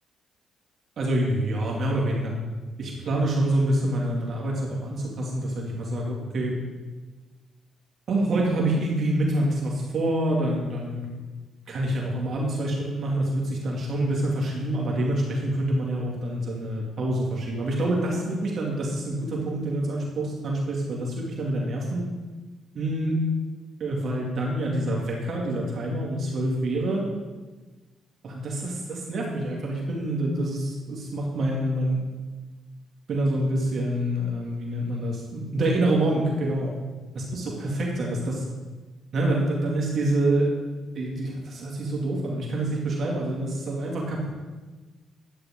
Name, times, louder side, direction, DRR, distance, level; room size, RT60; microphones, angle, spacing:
voice 1, 1.0-2.3 2.8-6.5 8.1-11.1 11.7-22.1 22.7-23.2 23.8-27.0 28.2-32.0 33.1-36.7 37.3-38.4 39.1-40.5 41.0-44.3, right 1 dB, 55° right, -2 dB, 2.2 m, -26 dB
11.5 x 9.1 x 3.7 m, 1.3 s
cardioid pair, 90°, 0 cm